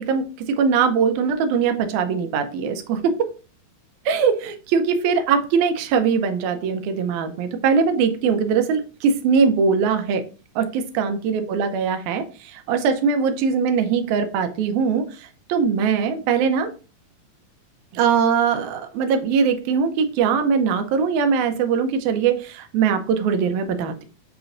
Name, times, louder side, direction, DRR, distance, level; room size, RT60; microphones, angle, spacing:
voice 1, 0.0-3.2 4.1-10.2 10.6-15.1 15.5-16.7 17.9-24.0, right 6 dB, 80° right, 7 dB, 2.0 m, -21 dB
6.8 x 3.0 x 2.5 m, 0.35 s
omnidirectional pair, 3.5 m